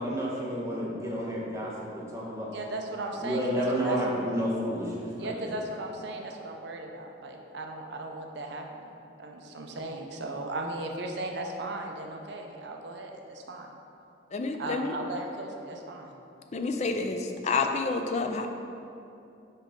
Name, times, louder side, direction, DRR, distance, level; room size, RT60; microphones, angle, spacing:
voice 1, 0.0-2.5 3.2-5.6 16.7-16.8, equal, 15° right, -5 dB, 1.0 m, -31 dB
voice 2, 2.5-4.0 5.2-13.7 14.6-16.1, right 2 dB, 60° right, 2 dB, 0.5 m, -37 dB
voice 3, 14.3-14.9 16.5-18.5, left 4 dB, 35° left, 5 dB, 0.4 m, -29 dB
5.4 x 5.1 x 3.6 m, 2.7 s
head